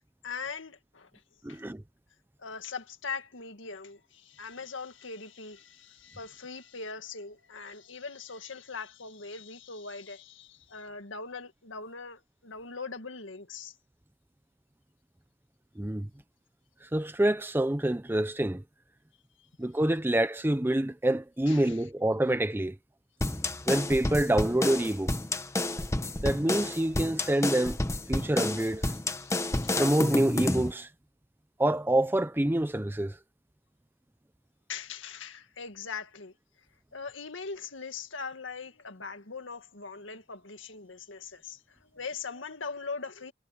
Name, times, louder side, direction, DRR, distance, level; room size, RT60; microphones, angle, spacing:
voice 1, 0.2-1.1 1.5-1.6 2.4-13.7 21.5-21.8 28.2-28.3 29.2-29.8 34.7-36.3 36.9-43.3, left 5 dB, 80° left, 1.9 m, -41 dB
voice 2, 1.4-1.8 15.8-16.1 16.8-18.6 19.6-22.8 23.7-25.1 26.2-27.8 28.1-28.9 29.8-30.9 31.6-33.2, right 1 dB, 10° right, 0.6 m, -27 dB
sound 1, 23.2-30.7, left 1 dB, 15° left, 1.2 m, -30 dB
head